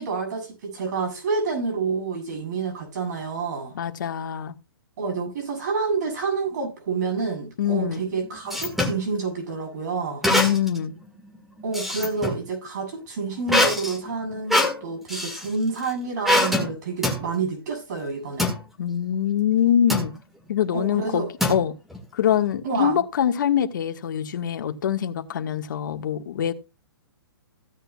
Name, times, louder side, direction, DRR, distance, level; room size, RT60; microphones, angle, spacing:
voice 1, 0.0-3.7 5.0-10.3 11.6-18.5 20.7-21.3 22.6-23.0, right 4 dB, 45° right, 7.6 m, -28 dB
voice 2, 3.7-4.6 7.6-8.0 10.3-10.9 18.8-20.1 20.5-21.7 22.1-26.5, left 9 dB, 50° left, 1.5 m, -24 dB
sound 1, 7.9-9.0 10.2-10.8 11.2-12.4 13.5-15.5 16.2-16.7 17.0-17.2 18.4-18.6 19.9-20.2 21.4-22.0, left 1 dB, ahead, 1.7 m, -23 dB
16.0 x 9.1 x 2.3 m
hypercardioid pair, 160°, 13 cm